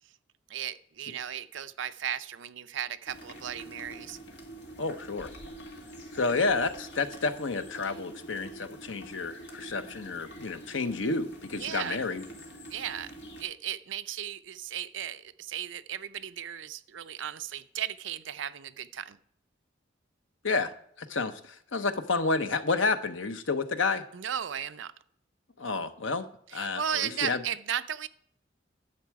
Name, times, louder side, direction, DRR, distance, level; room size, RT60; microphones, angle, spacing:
voice 1, 0.5-4.2 11.6-12.0 12.7-13.1 13.4-19.2 24.1-24.9 26.5-28.1, right 9 dB, 80° right, 12 dB, 0.5 m, -35 dB
sound 1, 3.1-13.4, right 1 dB, 65° left, 2.1 m, -46 dB
voice 2, 4.8-5.3 6.1-12.2 20.4-20.7 21.0-24.0 25.6-26.2 26.5-26.8 27.2-27.4, left 3 dB, 85° left, 9 dB, 0.9 m, -30 dB
11.0 x 7.4 x 4.7 m, 0.67 s
head